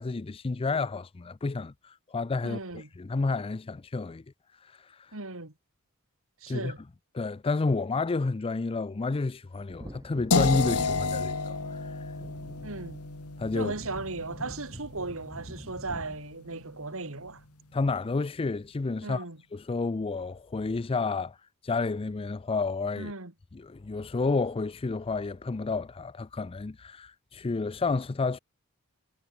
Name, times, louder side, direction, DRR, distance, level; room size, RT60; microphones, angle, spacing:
voice 1, 0.0-2.6 3.0-4.2 4.6-5.1 6.5-6.7 7.1-12.1 13.4-13.7 17.7-19.2 19.5-21.4 21.6-23.1 23.5-28.4, left 3 dB, 25° left, 0.4 m, -30 dB
voice 2, 2.4-2.9 5.1-5.5 6.4-6.8 12.6-13.0 13.5-17.4 19.0-19.4 23.0-23.3, right 3 dB, 65° right, 3.1 m, -37 dB
Wind / Thunder, 9.5-17.8 18.1-18.2, equal, 15° right, 5.9 m, -46 dB
sound 1, 10.3-16.2, left 3 dB, 80° left, 2.2 m, -31 dB
head